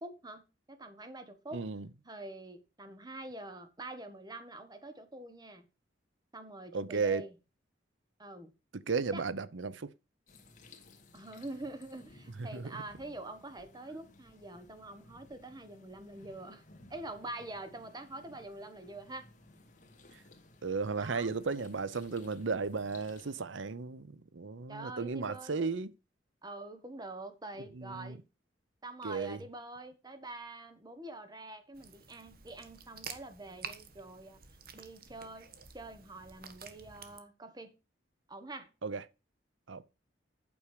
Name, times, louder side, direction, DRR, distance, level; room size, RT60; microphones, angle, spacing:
voice 1, 0.0-1.6 2.0-5.7 6.3-7.3 8.2-8.5 9.1-9.2 11.1-16.6 16.9-19.3 20.9-21.3 24.7-25.7 26.4-28.2 28.8-34.4 34.7-35.5 35.7-37.7 38.3-38.7, right 2 dB, 20° right, 1.3 m, -45 dB
voice 2, 1.5-1.9 6.7-7.2 8.7-9.9 12.4-12.7 20.6-25.9 27.7-28.2 29.0-29.4 38.8-39.0 39.7-39.8, right 4 dB, 80° right, 0.7 m, -35 dB
sound 1, 10.3-23.4, left 2 dB, 40° left, 1.9 m, -58 dB
sound 2, 31.7-37.2, right 7 dB, 50° right, 1.3 m, -49 dB
8.7 x 6.4 x 4.9 m
head